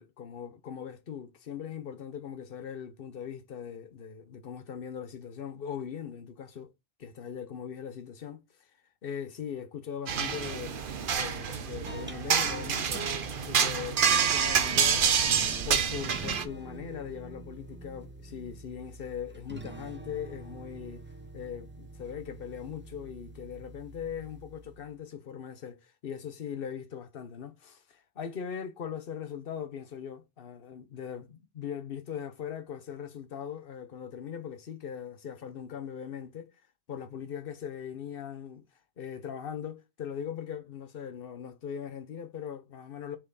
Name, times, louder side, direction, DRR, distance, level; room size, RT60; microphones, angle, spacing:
voice 1, 0.0-6.7 7.0-8.4 9.0-10.8 11.1-15.1 15.7-21.1 21.3-36.5 36.9-38.6 39.0-43.2, left 8 dB, 45° left, 1.0 m, -40 dB
sound 1, 10.1-16.5, right 7 dB, 50° right, 0.7 m, -27 dB
sound 2, 11.5-25.1, right 2 dB, 10° right, 0.5 m, -46 dB
6.1 x 4.6 x 4.0 m
omnidirectional pair, 1.5 m